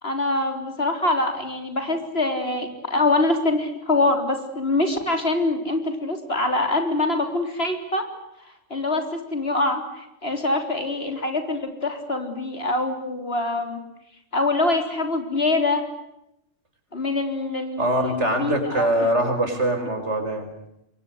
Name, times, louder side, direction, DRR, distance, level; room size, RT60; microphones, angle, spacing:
voice 1, 0.0-8.0 8.7-13.8 14.3-15.9 16.9-18.9, left 2 dB, 50° left, 6 dB, 4.1 m, -24 dB
voice 2, 17.8-20.5, right 1 dB, 65° right, 6 dB, 5.8 m, -23 dB
27.5 x 23.5 x 8.1 m, 0.83 s
omnidirectional pair, 1.3 m